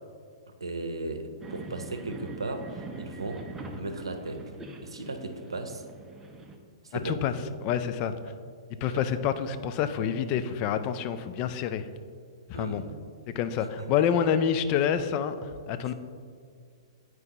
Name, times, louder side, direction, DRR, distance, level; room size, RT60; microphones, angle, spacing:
voice 1, 0.6-3.4 3.8-4.5 4.8-5.8 6.8-7.2 8.9-9.0 12.5-12.9 13.6-13.9, right 2 dB, 80° right, 6 dB, 0.7 m, -36 dB
sound 1, 1.4-6.6, right 2 dB, 10° right, 0.6 m, -43 dB
voice 2, 7.6-8.1 8.8-11.9 12.5-12.8 13.3-15.9, left 8 dB, 35° left, 10 dB, 0.4 m, -27 dB
9.6 x 4.6 x 2.9 m, 2.1 s
figure-of-eight pair, 115°, 3 cm